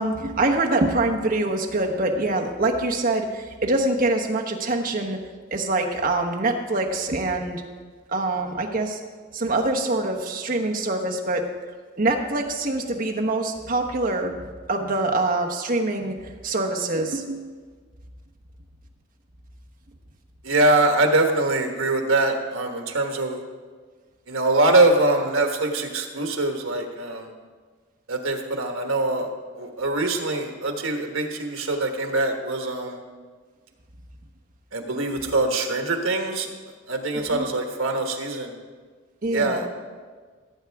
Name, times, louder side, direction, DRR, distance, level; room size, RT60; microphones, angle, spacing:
voice 1, 0.0-5.2 5.5-7.6 8.1-9.0 9.3-11.4 12.0-14.3 14.7-17.4 37.1-37.5 39.2-39.6, right 2 dB, 45° right, 1 dB, 1.1 m, -24 dB
voice 2, 20.4-23.4 24.3-27.3 28.1-29.3 29.6-33.0 34.7-36.5 36.9-38.5 39.3-39.7, right 2 dB, 80° right, 4 dB, 1.4 m, -23 dB
17.0 x 8.1 x 3.5 m, 1.5 s
head